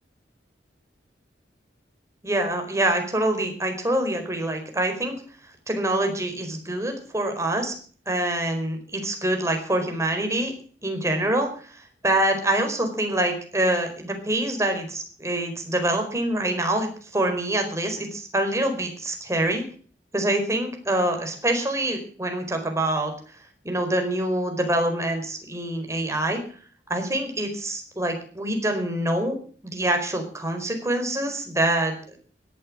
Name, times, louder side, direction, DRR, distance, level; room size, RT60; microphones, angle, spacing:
voice 1, 2.2-5.2 5.7-7.7 8.1-10.5 10.8-11.5 12.0-19.6 20.1-23.1 23.6-26.4 26.9-29.4 29.6-32.2, right 1 dB, 15° right, 4 dB, 4.6 m, -25 dB
17.0 x 12.5 x 6.2 m, 0.43 s
head